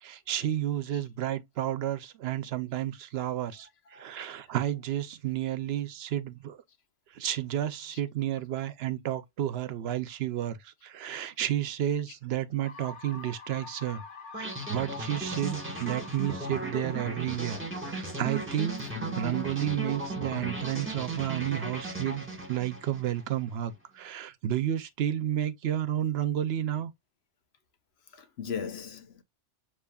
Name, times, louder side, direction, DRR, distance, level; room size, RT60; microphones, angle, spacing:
voice 1, 0.0-6.6 7.1-14.0 14.4-17.6 17.9-18.8 19.2-26.9, right 11 dB, 70° right, 0.8 m, -31 dB
voice 2, 3.9-4.5 4.9-5.0 7.9-8.0 11.2-11.3 17.7-19.7 21.3-21.6 28.1-29.2, left 6 dB, 70° left, 1.1 m, -42 dB
sound 1, 12.6-20.5, left 4 dB, 50° left, 1.4 m, -48 dB
sound 2, 14.3-23.4, right 2 dB, 10° right, 1.4 m, -36 dB
6.8 x 2.9 x 2.3 m
omnidirectional pair, 1.1 m